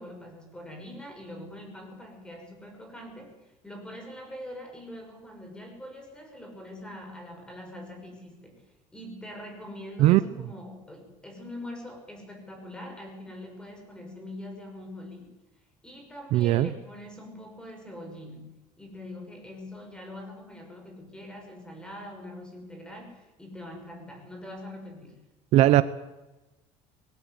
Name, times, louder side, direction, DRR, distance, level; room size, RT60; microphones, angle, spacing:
voice 1, 0.0-8.7 8.9-15.4 15.8-25.2, left 1 dB, 5° left, 3 dB, 6.0 m, -43 dB
voice 2, 16.3-16.7 25.5-25.8, right 15 dB, 60° right, 14 dB, 0.8 m, -18 dB
20.5 x 17.0 x 8.1 m, 1.0 s
cardioid pair, 155°, 12 cm